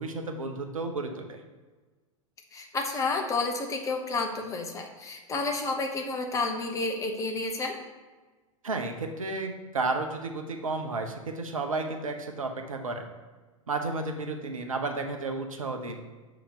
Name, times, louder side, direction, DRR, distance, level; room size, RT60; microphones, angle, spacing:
voice 1, 0.0-1.4 8.6-13.1 13.7-16.0, right 3 dB, 75° right, 4 dB, 0.7 m, -32 dB
voice 2, 2.5-7.7, left 3 dB, 20° left, 3 dB, 0.7 m, -30 dB
7.0 x 2.9 x 5.3 m, 1.3 s
figure-of-eight pair, 90°, 18 cm